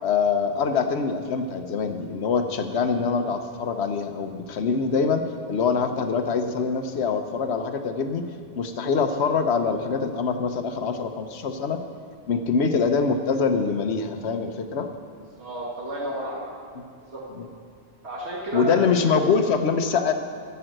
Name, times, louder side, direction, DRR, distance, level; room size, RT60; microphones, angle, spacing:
voice 1, 0.0-5.2 5.5-8.2 8.5-11.8 12.3-14.9 17.4-17.5 18.5-20.1, left 5 dB, 75° left, 7 dB, 1.1 m, -24 dB
voice 2, 15.4-16.5 17.1-17.2 18.0-19.1, right 1 dB, 85° right, -5 dB, 2.2 m, -32 dB
14.0 x 5.6 x 7.8 m, 2.2 s
omnidirectional pair, 1.1 m